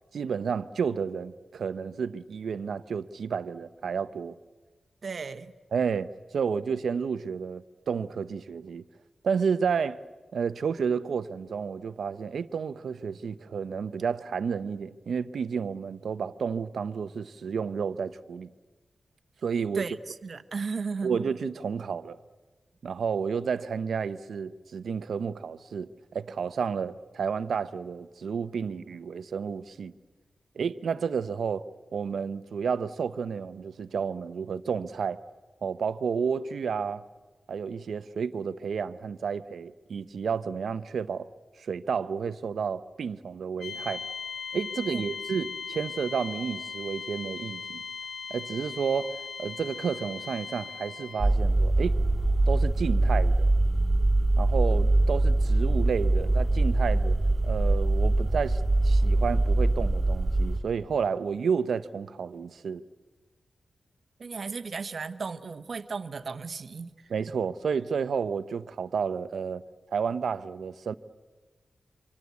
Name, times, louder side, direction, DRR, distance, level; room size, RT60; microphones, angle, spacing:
voice 1, 0.1-4.3 5.7-8.8 9.2-10.0 10.3-18.5 19.4-19.8 21.0-22.2 22.8-29.9 30.6-31.6 31.9-35.2 35.6-37.1 37.5-41.3 41.6-44.0 44.5-47.8 48.3-52.0 52.5-53.5 54.4-57.2 57.4-62.8 67.1-69.6 69.9-70.9, right 6 dB, 85° right, 0.8 m, -31 dB
voice 2, 5.0-5.5 19.7-21.2 44.9-45.0 64.2-67.1, right 4 dB, 55° right, 1.0 m, -35 dB
sound 1, 43.6-51.3, left 5 dB, 90° left, 3.5 m, -38 dB
sound 2, 51.2-60.6, right 2 dB, 20° right, 2.3 m, -23 dB
26.5 x 25.0 x 8.3 m
wide cardioid pair, 150°, 0 cm